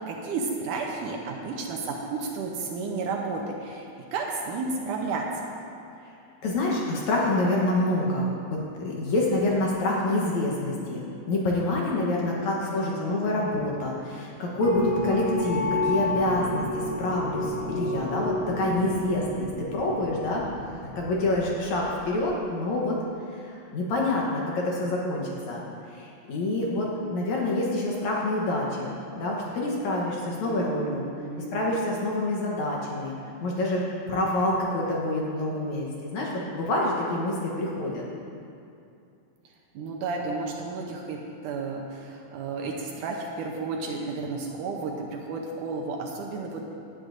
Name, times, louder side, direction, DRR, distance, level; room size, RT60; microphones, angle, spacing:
voice 1, 0.0-5.5 12.6-13.6 30.5-31.9 39.7-46.7, right 4 dB, 75° right, 0 dB, 2.1 m, -33 dB
voice 2, 6.4-20.4 21.0-23.0 23.3-25.6 25.9-31.0 31.4-33.1 33.4-38.0, left 1 dB, 65° left, -3 dB, 2.1 m, -27 dB
sound 1, 14.6-22.1, left 2 dB, 15° right, 0.8 m, -31 dB
17.0 x 9.8 x 2.6 m, 2.6 s
omnidirectional pair, 4.1 m